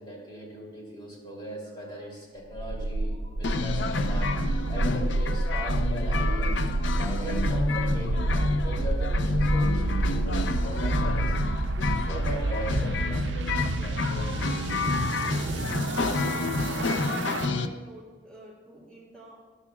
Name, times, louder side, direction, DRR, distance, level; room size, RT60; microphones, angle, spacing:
voice 1, 0.0-15.0, equal, 25° left, -3 dB, 2.8 m, -40 dB
sound 1, 2.5-17.5, right 2 dB, 80° right, 0.5 m, -29 dB
sound 2, 3.4-17.7, left 3 dB, 80° left, 0.5 m, -29 dB
sound 3, 8.9-17.0, equal, 45° left, 0.9 m, -41 dB
voice 2, 16.0-19.4, right 1 dB, 5° left, -5 dB, 2.8 m, -48 dB
12.5 x 11.5 x 2.3 m, 1.4 s
head